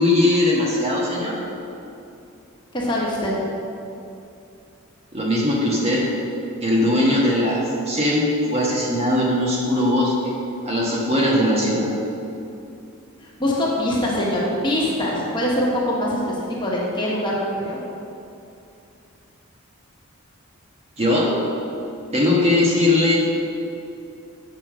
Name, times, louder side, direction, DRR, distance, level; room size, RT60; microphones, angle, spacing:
voice 1, 0.0-1.4 5.1-6.1 6.6-10.4 10.6-11.9 21.0-21.4 22.1-23.2, left 1 dB, 30° right, -4 dB, 1.4 m, -20 dB
voice 2, 2.7-3.5 13.2-17.8, left 1 dB, 20° left, -5 dB, 1.4 m, -23 dB
8.4 x 5.5 x 6.2 m, 2.7 s
head